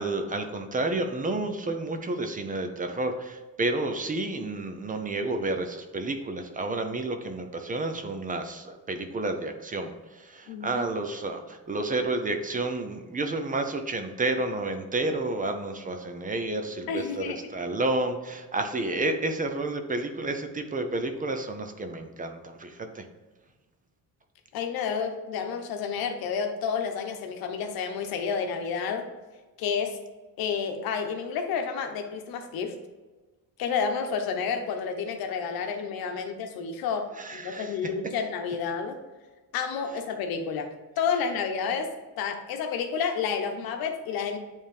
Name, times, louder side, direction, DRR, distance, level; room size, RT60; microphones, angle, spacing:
voice 1, 0.0-9.9 10.2-23.0 37.2-37.7, right 2 dB, 25° right, 7 dB, 0.5 m, -30 dB
voice 2, 10.5-10.8 16.9-17.5 24.5-29.1 29.6-30.0 30.4-32.7 33.6-39.0 39.5-40.7 41.0-41.9 42.2-44.4, left 6 dB, 80° left, 5 dB, 1.0 m, -30 dB
8.9 x 3.6 x 3.4 m, 1.2 s
cardioid pair, 145°, 36 cm